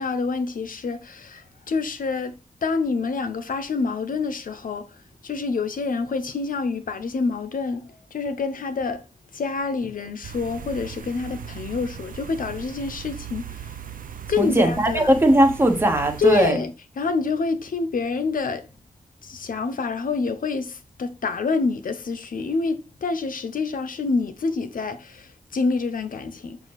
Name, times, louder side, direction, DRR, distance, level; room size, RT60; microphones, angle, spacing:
voice 1, 0.0-9.0 9.3-13.7 14.3-15.1 16.2-18.7 19.2-26.6, left 4 dB, 85° left, 0.8 m, -27 dB
sound 1, 10.2-16.5, right 8 dB, 90° right, 0.6 m, -38 dB
voice 2, 14.4-16.6, right 1 dB, 15° right, 1.1 m, -18 dB
6.7 x 4.7 x 3.0 m
wide cardioid pair, 120°, 14 cm